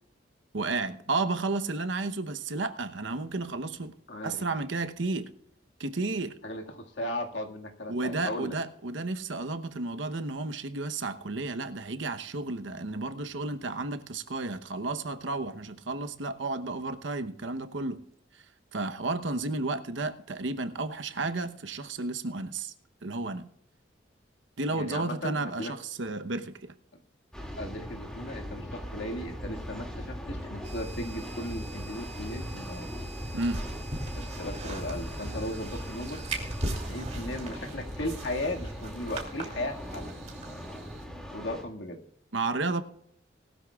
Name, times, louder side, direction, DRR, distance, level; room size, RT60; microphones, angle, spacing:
voice 1, 0.5-4.0 4.2-5.3 5.8-6.3 7.9-18.0 18.7-22.7 23.0-23.5 24.6-26.7 33.3-33.6 42.3-42.8, right 3 dB, 85° right, 1.0 m, -32 dB
voice 2, 4.1-4.7 6.4-8.5 24.7-25.7 27.6-32.9 34.1-36.2 36.9-40.1 41.3-42.0, left 1 dB, 75° left, 2.0 m, -36 dB
sound 1, 27.3-41.6, equal, 5° left, 2.4 m, -39 dB
sound 2, 30.6-41.0, right 2 dB, 35° right, 2.8 m, -40 dB
19.5 x 13.0 x 2.4 m
head